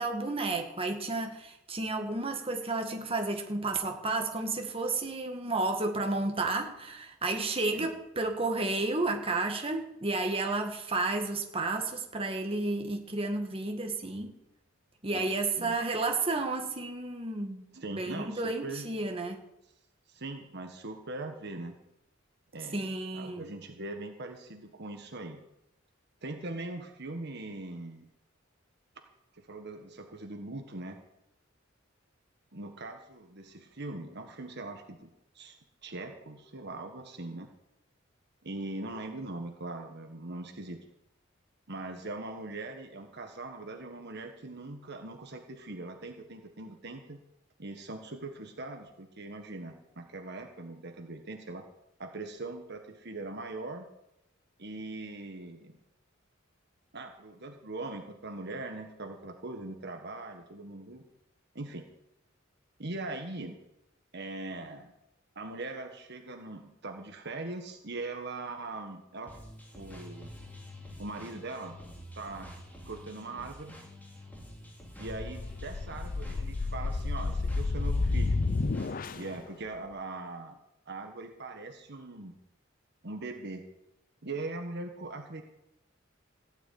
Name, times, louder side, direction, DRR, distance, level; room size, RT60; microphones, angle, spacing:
voice 1, 0.0-14.3 15.0-17.7 18.0-19.4 22.7-23.4, right 2 dB, 30° right, 3 dB, 1.9 m, -32 dB
voice 2, 17.7-18.8 20.1-21.7 22.5-22.9 23.1-25.4 26.2-28.1 29.3-31.0 32.5-35.1 35.3-37.5 38.4-40.8 41.7-47.2 47.6-51.7 52.0-53.8 54.6-55.8 56.9-61.0 61.5-61.8 62.8-63.6 64.1-64.9 65.3-69.4 69.7-70.3 71.0-71.7 72.1-72.5 72.8-73.8 75.0-78.4 79.1-80.6 80.9-82.4 83.0-83.7 84.2-85.4, right 2 dB, 55° right, 4 dB, 1.5 m, -41 dB
sound 1, 69.3-79.4, left 1 dB, 10° left, 3.1 m, -47 dB
sound 2, 75.1-79.4, left 3 dB, 45° left, 0.5 m, -31 dB
16.5 x 6.2 x 9.4 m, 0.86 s
head